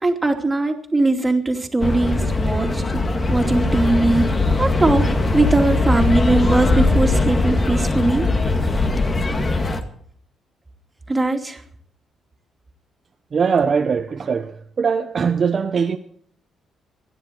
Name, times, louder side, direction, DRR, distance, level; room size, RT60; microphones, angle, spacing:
voice 1, 0.0-3.0 3.3-4.2 4.6-5.0 5.3-8.3 11.1-11.6, right 2 dB, 20° right, 2.7 m, -20 dB
sound 1, 1.8-9.8, left 2 dB, 30° left, 2.0 m, -20 dB
voice 2, 13.3-14.5 14.8-16.0, right 6 dB, 45° right, 0.9 m, -20 dB
26.5 x 10.5 x 4.5 m
cardioid pair, 90°, 0 cm